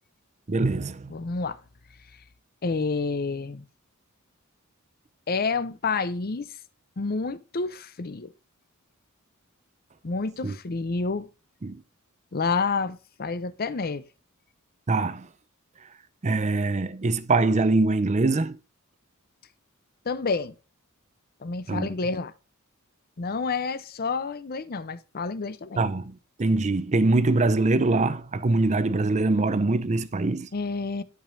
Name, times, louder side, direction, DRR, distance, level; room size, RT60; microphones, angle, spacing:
voice 1, 0.5-1.1 10.4-10.6 11.6-11.8 14.9-15.3 16.2-18.6 21.7-21.9 25.8-30.5, right 3 dB, 35° right, 0.6 m, -23 dB
voice 2, 1.1-1.6 2.6-3.7 5.3-6.5 7.0-8.3 10.0-11.3 12.3-14.0 20.1-20.5 21.4-22.3 23.2-25.8 30.5-31.0, left 4 dB, 45° left, 0.6 m, -29 dB
12.0 x 5.1 x 2.6 m
head